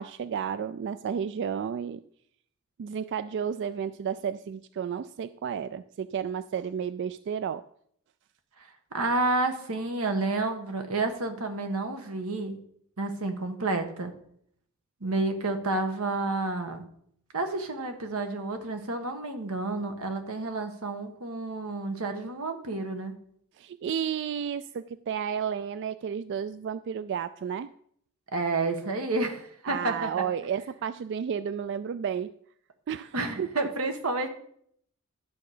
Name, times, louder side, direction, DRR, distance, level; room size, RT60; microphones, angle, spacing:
voice 1, 0.0-2.0 2.8-7.6 23.6-27.7 29.6-32.3 32.9-33.5, right 7 dB, 55° right, 14 dB, 0.3 m, -32 dB
voice 2, 8.6-12.6 13.0-14.1 15.0-16.8 17.3-23.1 28.3-30.2 33.1-34.3, right 2 dB, 90° right, 6 dB, 1.4 m, -30 dB
11.5 x 6.6 x 5.0 m, 0.68 s
head